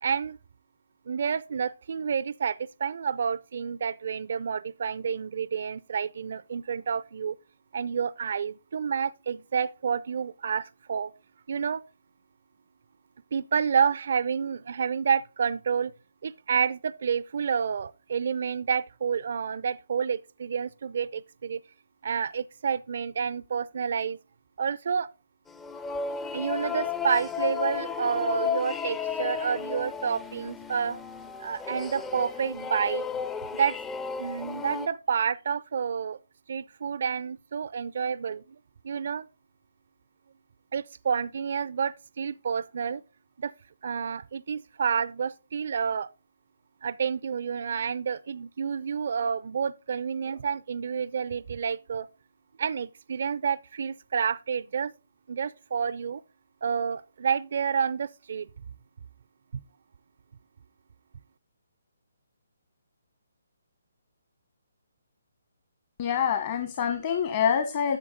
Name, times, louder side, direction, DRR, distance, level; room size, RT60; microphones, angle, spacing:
voice 1, 0.0-0.4 1.1-7.4 7.7-11.1 11.5-11.8 13.3-15.9 16.2-21.6 22.0-24.2 24.6-25.1 26.3-31.0 31.4-33.0 33.5-33.8 34.2-36.2 36.5-38.4 38.8-39.3 40.7-43.0 43.4-43.5 43.8-46.1 46.8-52.1 52.6-54.9 55.3-56.2 56.6-58.5, right 6 dB, 55° right, 0.4 m, -29 dB
sound 1, 25.5-34.9, left 7 dB, 10° left, 0.4 m, -33 dB
voice 2, 66.0-68.0, left 7 dB, 40° left, 1.2 m, -26 dB
10.5 x 7.2 x 3.8 m
figure-of-eight pair, 140°, 0 cm